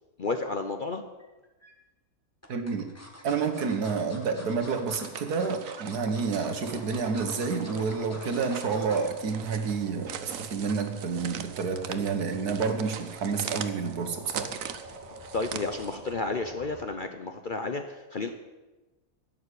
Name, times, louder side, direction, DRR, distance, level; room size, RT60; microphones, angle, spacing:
voice 1, 0.2-1.0 15.3-18.3, left 3 dB, 45° left, 7 dB, 0.7 m, -32 dB
sound 1, 1.2-1.7 2.4-9.1 9.5-9.8 10.1-10.2, equal, 10° left, 1.6 m, -48 dB
voice 2, 2.5-2.9 3.2-14.5, right 5 dB, 80° right, 7 dB, 1.9 m, -29 dB
sound 2, 4.8-16.1, right 8 dB, 60° right, 1.1 m, -41 dB
sound 3, 6.6-16.8, right 1 dB, 25° right, 3.7 m, -49 dB
11.0 x 7.2 x 9.8 m, 1.1 s
omnidirectional pair, 1.6 m